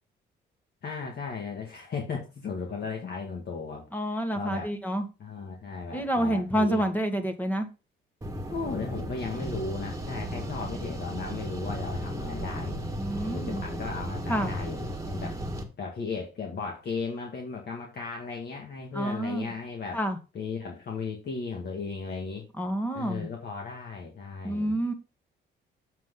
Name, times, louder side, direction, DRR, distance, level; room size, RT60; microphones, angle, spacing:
voice 1, 0.8-4.7 5.2-6.8 8.5-12.8 13.2-15.4 15.8-20.0 20.3-22.5 22.9-24.7, left 4 dB, 55° left, 1.8 m, -36 dB
voice 2, 3.9-5.1 5.9-7.7 13.0-13.6 14.3-14.6 18.9-19.5 19.9-20.2 22.6-23.3 24.4-24.9, right 1 dB, 10° left, 1.5 m, -28 dB
sound 1, 8.2-15.6, equal, 15° right, 1.7 m, -35 dB
7.4 x 6.1 x 3.8 m
cardioid pair, 90°, 20 cm